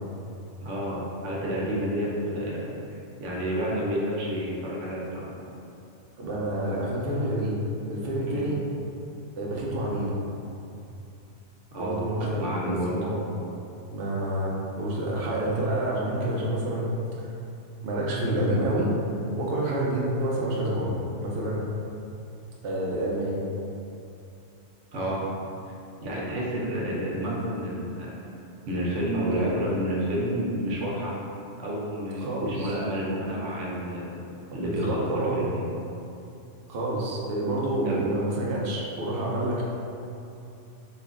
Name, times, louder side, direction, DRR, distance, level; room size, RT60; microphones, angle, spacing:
voice 1, 0.6-2.7 3.2-5.3 8.3-8.5 11.7-12.0 12.4-13.0 24.9-25.3 26.0-28.1 28.7-31.1 31.6-34.1 34.5-35.7 37.9-38.0, equal, 90° right, -4 dB, 1.0 m, -29 dB
voice 2, 6.2-7.6 7.9-8.6 9.4-10.1 11.8-13.2 13.9-16.9 17.8-18.9 19.4-21.6 22.6-23.4 29.3-29.7 32.2-32.8 34.5-35.4 36.7-39.6, right 1 dB, 60° right, -4 dB, 0.8 m, -28 dB
3.0 x 2.4 x 3.6 m, 2.7 s
omnidirectional pair, 1.2 m